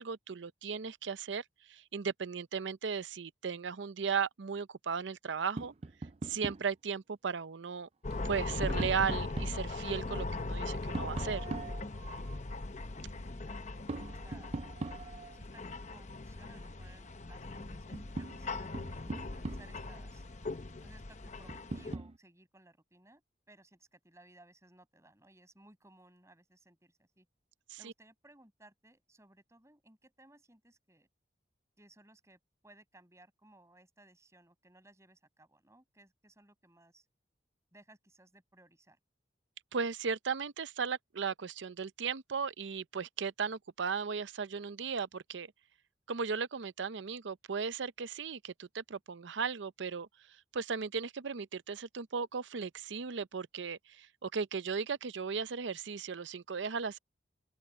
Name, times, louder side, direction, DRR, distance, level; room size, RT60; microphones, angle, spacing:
voice 1, 0.0-1.4 1.7-5.7 6.2-7.9 8.2-11.4 27.7-27.8 39.7-45.5 46.1-50.1 50.5-57.0, right 6 dB, 80° right, 0.6 m, -36 dB
Tap, 5.6-6.7 8.1-9.7 10.9-12.4 13.9-15.4 17.2-17.3 17.7-19.9 21.5-22.2, right 2 dB, 35° right, 0.5 m, -42 dB
sound 1, 8.0-22.0, left 2 dB, 40° left, 0.8 m, -40 dB
voice 2, 13.1-14.6 15.3-15.6 15.9-20.2 20.8-23.2 23.5-27.3 27.8-31.1 31.8-37.1 37.7-39.0, right 1 dB, 15° right, 7.8 m, -61 dB
open air
head